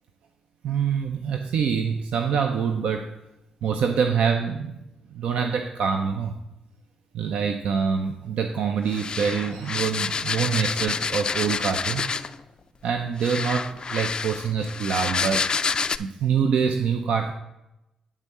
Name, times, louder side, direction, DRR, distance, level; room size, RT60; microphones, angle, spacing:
voice 1, 0.6-3.1 3.6-4.7 5.1-6.3 7.1-12.1 12.8-15.5 16.0-17.3, right 6 dB, 75° right, 5 dB, 0.5 m, -25 dB
sound 1, 8.9-12.4 13.2-16.0, left 5 dB, 45° left, 0.3 m, -28 dB
8.9 x 3.6 x 5.3 m, 0.90 s
supercardioid pair, 55°, 2 cm